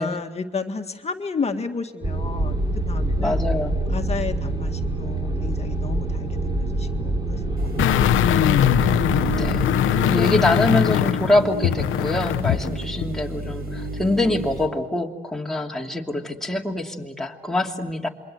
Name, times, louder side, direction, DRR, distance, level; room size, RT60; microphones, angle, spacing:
voice 1, 0.0-2.6 2.9-3.4 3.9-7.4 12.6-12.8, left 4 dB, 30° left, 5 dB, 1.9 m, -32 dB
sound 1, 2.0-9.7, right 2 dB, 20° right, 6.6 m, -26 dB
voice 2, 3.2-3.8 9.4-18.1, left 1 dB, ahead, 0 dB, 2.8 m, -24 dB
sound 2, 7.6-14.7, right 2 dB, 50° right, 7.3 m, -32 dB
sound 3, 7.8-12.7 13.0-13.1, left 12 dB, 80° left, 0.9 m, -21 dB
27.5 x 23.0 x 7.9 m, 1.2 s
cardioid pair, 90°, 20 cm